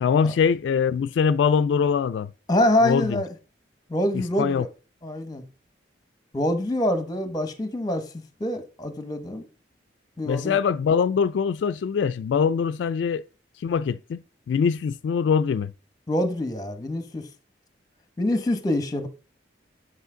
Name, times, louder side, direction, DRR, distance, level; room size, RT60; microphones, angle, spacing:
voice 1, 0.0-2.3 2.8-3.2 4.4-4.7 10.3-13.2 13.6-15.7, left 6 dB, 80° left, 0.3 m, -23 dB
voice 2, 2.5-3.3 3.9-4.7 5.0-5.4 6.3-8.1 8.4-9.5 10.2-10.6 16.1-17.3 18.2-19.1, left 1 dB, 20° left, 0.9 m, -25 dB
8.1 x 4.9 x 3.7 m
head